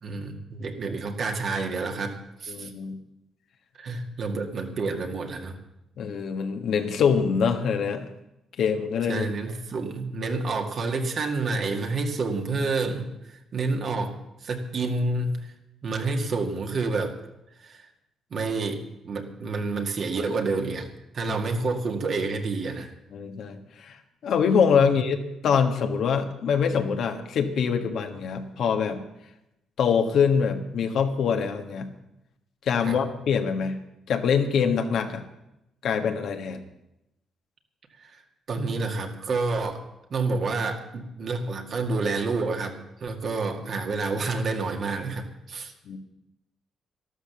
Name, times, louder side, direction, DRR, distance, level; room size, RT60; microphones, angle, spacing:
voice 1, 0.0-2.7 3.8-5.6 9.1-14.2 14.4-15.5 15.8-17.2 17.6-17.9 18.3-20.9 21.1-22.9 24.8-24.9 32.8-33.0 38.0-38.2 38.5-39.8 40.1-45.7, right 3 dB, 55° right, 4 dB, 2.0 m, -29 dB
voice 2, 2.5-3.0 6.0-8.1 8.6-9.3 23.1-24.0 24.2-29.0 29.8-31.9 32.6-33.8 34.1-35.2 35.8-36.6 45.8-46.0, left 6 dB, 70° left, 6 dB, 1.5 m, -24 dB
13.0 x 12.0 x 7.0 m, 0.88 s
cardioid pair, 90°, 0 cm